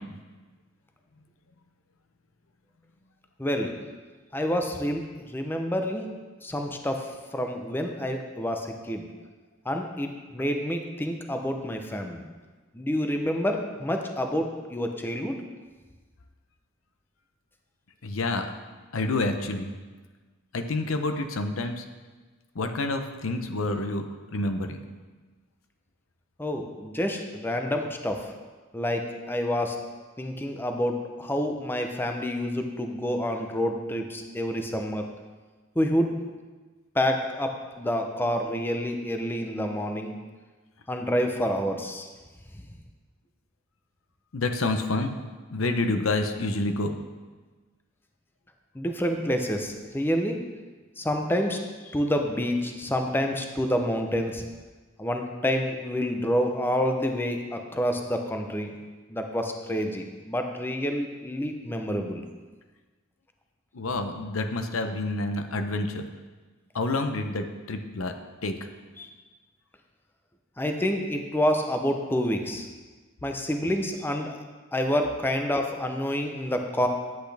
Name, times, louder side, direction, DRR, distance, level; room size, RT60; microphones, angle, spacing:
voice 1, 3.4-3.7 4.3-6.1 6.4-7.1 7.3-9.1 9.7-12.3 12.7-15.4 26.4-28.3 28.7-29.8 30.2-35.1 35.8-36.2 36.9-40.1 40.9-42.1 42.5-42.6 48.7-50.4 51.0-51.6 51.9-54.4 55.0-58.7 59.1-62.2 69.0-69.1 70.6-72.7 73.2-74.4 74.7-76.9, equal, 10° left, 4 dB, 0.6 m, -28 dB
voice 2, 18.0-18.5 18.9-19.7 20.5-21.8 22.5-24.1 24.3-24.8 44.3-45.1 45.5-46.9 63.7-66.1 66.7-68.1 68.4-68.5, left 2 dB, 85° left, 7 dB, 0.7 m, -28 dB
10.5 x 8.2 x 3.4 m, 1.3 s
head